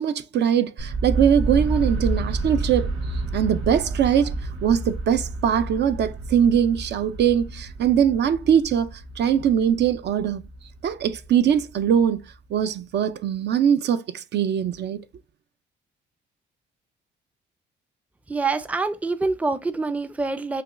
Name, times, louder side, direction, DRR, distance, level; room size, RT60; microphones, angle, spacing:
voice 1, 0.0-4.3 4.6-10.4 10.8-12.2 12.5-15.0, right 8 dB, 60° right, 0.5 m, -22 dB
sound 1, 0.8-12.6, right 2 dB, 90° right, 1.7 m, -30 dB
voice 2, 18.3-20.6, right 3 dB, 5° right, 0.4 m, -26 dB
5.9 x 2.3 x 2.4 m
cardioid pair, 90°, 20 cm